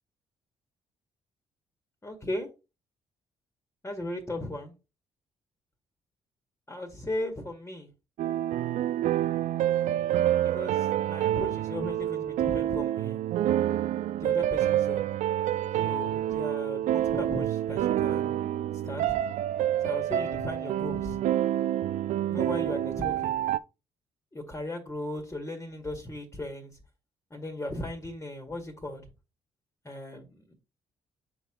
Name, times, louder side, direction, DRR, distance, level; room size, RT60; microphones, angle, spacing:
voice 1, 2.0-2.5 3.8-4.7 6.7-7.9 10.5-13.2 14.2-15.1 15.8-18.4 18.8-19.0 19.8-21.2 22.3-23.3 24.3-26.7 27.3-29.0 29.8-30.5, left 1 dB, 20° left, 3 dB, 2.0 m, -37 dB
sound 1, 8.2-23.6, right 12 dB, 65° right, 0.4 m, -28 dB
6.7 x 4.6 x 3.7 m, 0.29 s
hypercardioid pair, 55°, 13 cm